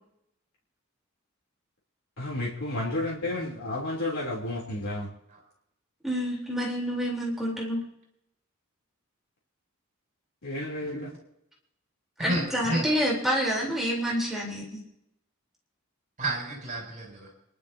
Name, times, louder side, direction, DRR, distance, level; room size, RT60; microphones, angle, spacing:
voice 1, 2.2-5.1 10.4-11.1, left 1 dB, 70° left, -5 dB, 3.3 m, -31 dB
voice 2, 6.0-7.8 12.2-14.8, equal, ahead, -4 dB, 3.7 m, -28 dB
voice 3, 10.8-11.2 12.2-12.4 12.7-12.9 16.2-17.3, right 1 dB, 35° right, -2 dB, 7.8 m, -31 dB
28.5 x 12.0 x 2.8 m, 0.79 s
head